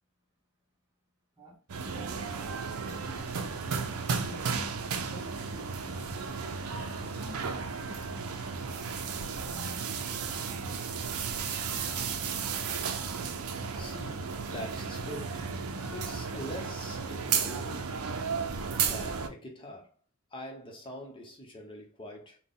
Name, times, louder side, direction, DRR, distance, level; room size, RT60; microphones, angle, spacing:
voice 1, 1.4-3.4 4.2-6.0 7.0-7.5 7.9-8.7 9.1-9.9 10.3-11.2 11.5-12.1, left 1 dB, 15° right, 0.6 m, -50 dB
sound 1, 1.7-19.3, right 5 dB, 75° right, 0.5 m, -34 dB
voice 2, 13.7-15.5 15.9-18.0 18.7-19.9 20.3-22.4, equal, 20° left, 0.8 m, -44 dB
4.2 x 2.2 x 3.6 m
head